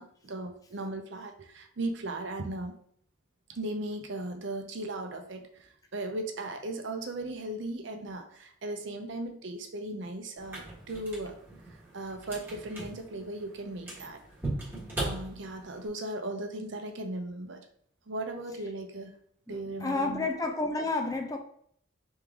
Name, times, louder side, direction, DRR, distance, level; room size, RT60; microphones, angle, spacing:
voice 1, 0.0-2.7 3.5-11.4 11.9-14.2 15.0-17.7 18.1-19.1 19.5-20.3, right 2 dB, 60° right, 5 dB, 0.6 m, -37 dB
sound 1, 10.4-15.9, right 2 dB, 10° right, 1.3 m, -39 dB
voice 2, 19.5-21.4, left 3 dB, 15° left, 3 dB, 0.4 m, -30 dB
3.6 x 3.3 x 3.6 m, 0.63 s
head